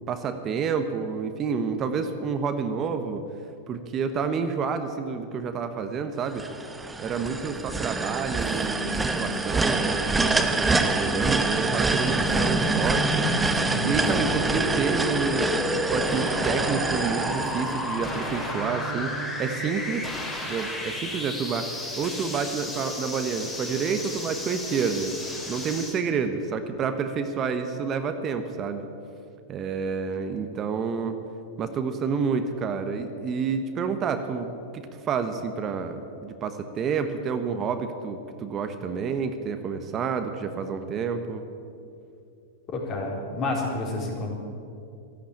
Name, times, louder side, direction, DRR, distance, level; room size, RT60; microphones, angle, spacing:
voice 1, 0.1-3.2 3.7-6.4 7.0-13.3 13.8-20.1 20.4-25.2 25.5-28.8 29.5-31.2 31.6-41.4, right 5 dB, 35° right, 8 dB, 1.1 m, -29 dB
sound 1, 6.4-18.5, right 3 dB, 10° right, 1.0 m, -26 dB
sound 2, 8.4-19.7, right 3 dB, 70° right, 1.8 m, -39 dB
sound 3, 12.0-26.0, left 1 dB, 15° left, 3.4 m, -32 dB
voice 2, 42.7-44.3, left 2 dB, 40° left, -1 dB, 4.3 m, -29 dB
13.0 x 11.5 x 8.6 m, 2.6 s
hypercardioid pair, 100°, 0 cm